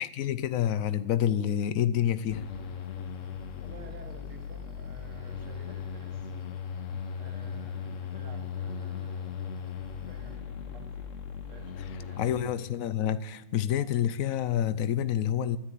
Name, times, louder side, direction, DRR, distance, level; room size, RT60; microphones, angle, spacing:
voice 1, 0.0-2.4 12.2-15.6, left 10 dB, 80° left, 0.7 m, -28 dB
sound 1, 2.3-12.4, left 7 dB, 50° left, 1.0 m, -38 dB
sound 2, 2.4-10.4, right 2 dB, 10° right, 2.8 m, -57 dB
voice 2, 3.6-6.3 7.2-9.7 10.1-12.6, right 4 dB, 90° right, 3.0 m, -52 dB
12.5 x 10.5 x 9.2 m
omnidirectional pair, 2.2 m